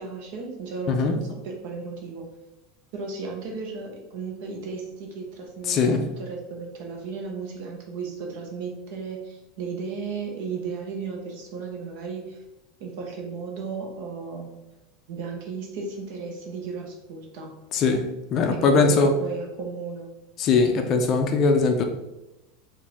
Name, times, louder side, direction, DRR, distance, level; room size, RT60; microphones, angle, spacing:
voice 1, 0.0-2.3 2.9-12.4 12.8-14.6 15.1-17.5 18.5-20.1, right 4 dB, 60° right, 1 dB, 1.0 m, -35 dB
voice 2, 5.7-6.1 17.7-19.1 20.4-21.8, left 4 dB, 30° left, 5 dB, 0.4 m, -21 dB
4.6 x 2.6 x 3.5 m, 0.98 s
supercardioid pair, 165°, 0 cm